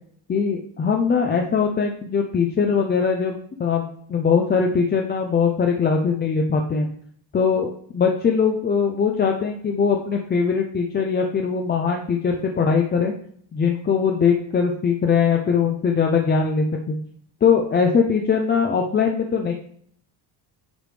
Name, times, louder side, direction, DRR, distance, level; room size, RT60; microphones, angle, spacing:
voice 1, 0.3-6.9 7.3-13.1 13.5-17.0 17.4-19.5, left 6 dB, 25° left, 2 dB, 0.4 m, -21 dB
9.1 x 4.9 x 3.2 m, 0.62 s
cardioid pair, 175°, 44 cm